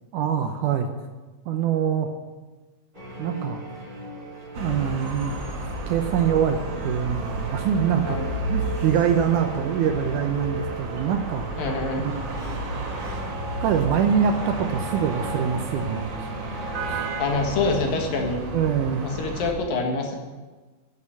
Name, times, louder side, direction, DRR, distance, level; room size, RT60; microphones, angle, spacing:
voice 1, 0.1-0.9 1.5-2.1 3.2-3.6 4.6-5.4 5.9-11.5 12.0-12.6 13.6-17.1 18.5-19.0, right 8 dB, 75° right, 6 dB, 2.0 m, -25 dB
sound 1, 2.9-17.3, right 3 dB, 15° right, 3.2 m, -38 dB
sound 2, 4.5-19.5, right 1 dB, 45° right, 1.7 m, -32 dB
voice 2, 11.6-12.1 17.2-18.4 19.0-20.2, left 3 dB, 75° left, 2 dB, 3.3 m, -26 dB
10.5 x 8.5 x 8.4 m, 1.3 s
omnidirectional pair, 4.2 m